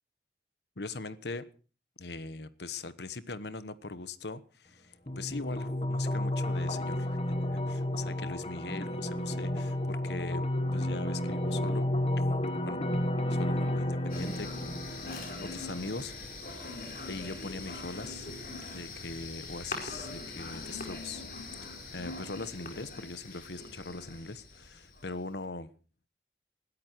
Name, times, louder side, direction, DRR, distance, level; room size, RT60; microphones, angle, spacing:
voice 1, 0.8-1.5 2.0-7.2 7.5-11.9 12.2-12.4 12.6-12.8 13.3-16.1 17.1-18.3 18.7-25.7, left 3 dB, 75° left, 1.2 m, -41 dB
sound 1, 5.1-16.1, left 1 dB, 35° left, 1.7 m, -32 dB
sound 2, 14.1-25.3, left 3 dB, 50° left, 4.4 m, -42 dB
20.5 x 13.0 x 4.6 m
head